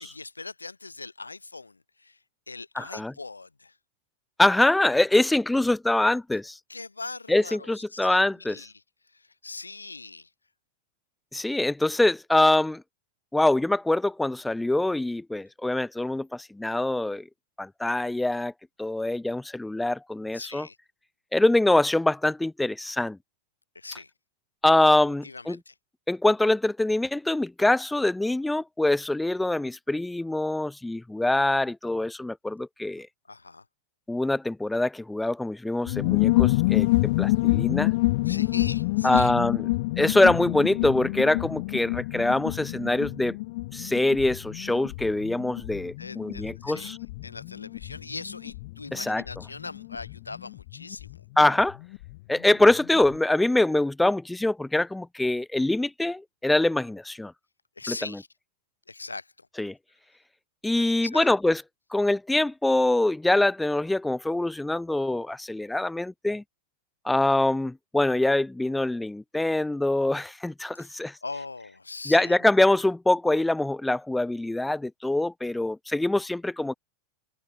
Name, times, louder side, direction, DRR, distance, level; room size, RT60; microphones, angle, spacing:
voice 1, 0.0-2.2 2.5-3.8 6.7-8.7 9.0-10.3 20.3-20.8 23.7-24.1 25.1-25.7 33.3-33.6 38.3-39.3 46.0-46.9 47.2-51.3 57.8-58.3 58.9-59.5 60.7-61.3 70.7-72.4, left 3 dB, 80° left, 0.9 m, -41 dB
voice 2, 2.8-3.1 4.4-6.6 7.3-8.7 11.3-12.8 13.3-17.2 17.6-18.5 18.8-20.7 21.3-23.2 24.6-25.6 26.1-33.1 34.1-36.9 37.2-37.9 39.0-39.6 40.0-43.4 43.7-46.9 48.9-49.2 51.4-51.8 52.3-57.3 57.9-58.2 59.6-59.8 60.6-61.6 61.9-66.4 67.0-71.2 72.1-76.7, left 2 dB, 5° left, 0.7 m, -24 dB
sound 1, 35.8-52.1 52.4-52.5 52.7-53.1, left 21 dB, 50° left, 0.7 m, -28 dB
open air
figure-of-eight pair, 90°, 0 cm